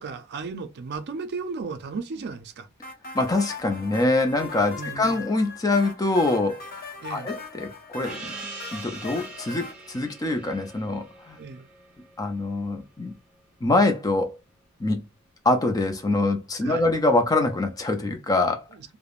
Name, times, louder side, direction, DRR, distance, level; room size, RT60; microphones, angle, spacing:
voice 1, 0.0-2.7 4.8-5.2 7.0-7.3 11.4-11.7 16.6-16.9 18.7-19.0, right 4 dB, 55° right, 0.4 m, -35 dB
sound 1, 2.8-9.7, left 3 dB, 45° left, 0.9 m, -40 dB
voice 2, 3.1-6.8 7.1-7.7 7.9-8.2 8.7-11.4 12.2-13.1 13.6-14.4 14.8-15.0 15.4-18.7, left 2 dB, 20° left, 0.4 m, -24 dB
Gong, 8.0-13.1, right 3 dB, 5° right, 1.0 m, -42 dB
3.3 x 2.1 x 2.3 m
head